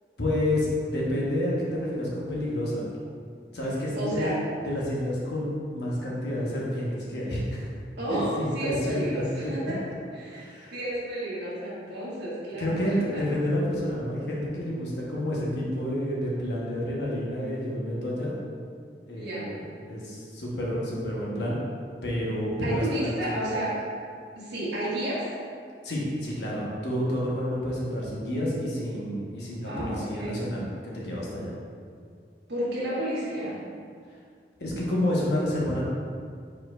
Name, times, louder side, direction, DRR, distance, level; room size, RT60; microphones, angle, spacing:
voice 1, 0.2-2.8 3.5-4.3 4.6-7.7 8.1-9.5 10.3-10.7 12.6-18.4 19.1-21.6 22.0-23.4 25.8-31.5 34.6-35.8, left 1 dB, 75° left, -5 dB, 1.1 m, -29 dB
voice 2, 3.9-4.3 8.0-9.8 10.1-10.4 10.7-13.3 19.1-19.6 22.6-23.7 24.3-25.2 29.6-30.4 32.5-33.6, right 1 dB, 80° right, -9 dB, 1.3 m, -31 dB
4.8 x 4.3 x 2.4 m, 2.2 s
head